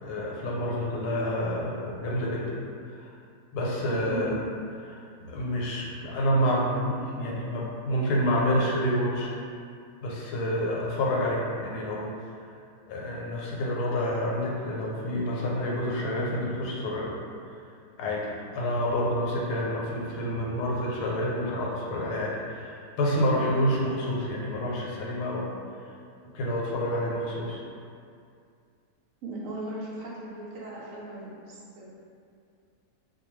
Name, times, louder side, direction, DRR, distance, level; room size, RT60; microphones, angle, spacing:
voice 1, 0.0-2.6 2.9-3.1 3.5-4.4 4.8-9.3 10.0-12.5 12.9-17.1 18.0-18.3 18.5-25.5 26.3-27.6, equal, 90° left, -4 dB, 1.1 m, -28 dB
voice 2, 29.2-31.9, right 2 dB, 65° right, -6 dB, 0.9 m, -37 dB
2.5 x 2.2 x 3.0 m, 2.4 s
omnidirectional pair, 1.7 m